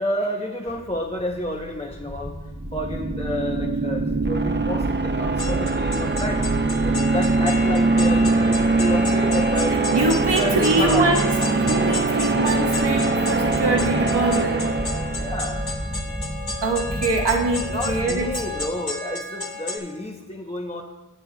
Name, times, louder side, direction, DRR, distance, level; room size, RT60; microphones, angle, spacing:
voice 1, 0.0-2.4 2.7-6.5 6.8-9.9 10.2-11.1 12.5-12.6 15.2-15.6 17.7-20.8, left 1 dB, 15° left, 1 dB, 0.7 m, -30 dB
sound 1, 0.7-18.7, right 1 dB, 10° right, 1.4 m, -33 dB
sound 2, 2.6-15.6, right 3 dB, 25° right, 0.5 m, -22 dB
sound 3, 5.4-19.8, left 3 dB, 65° left, 1.6 m, -32 dB
voice 2, 9.9-11.2 11.5-14.7 16.6-18.3, right 2 dB, 80° right, 0 dB, 1.3 m, -23 dB
17.5 x 7.6 x 2.2 m, 1.1 s
wide cardioid pair, 45°, 41 cm